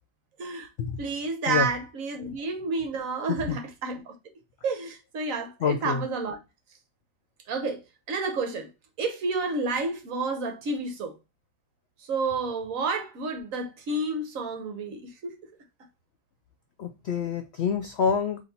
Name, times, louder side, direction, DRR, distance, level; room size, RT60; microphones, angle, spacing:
voice 1, 1.0-4.1 4.6-6.4 7.5-8.7 9.0-11.2 12.0-15.3, right 3 dB, 60° right, 1.2 m, -30 dB
voice 2, 5.6-6.0 16.8-18.4, left 6 dB, 85° left, 0.5 m, -26 dB
4.0 x 2.8 x 4.0 m
omnidirectional pair, 1.7 m